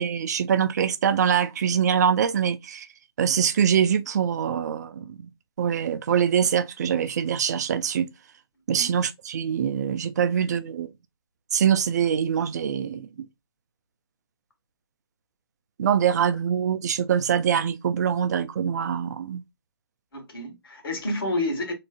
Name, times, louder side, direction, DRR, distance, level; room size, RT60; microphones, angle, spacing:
voice 1, 0.0-2.9 3.2-5.3 5.6-8.1 8.7-10.9 11.5-13.1 15.8-19.4, right 8 dB, 40° right, 0.5 m, -24 dB
voice 2, 20.1-21.7, left 1 dB, 60° left, 1.9 m, -29 dB
3.7 x 3.2 x 2.4 m
figure-of-eight pair, 145°, 14 cm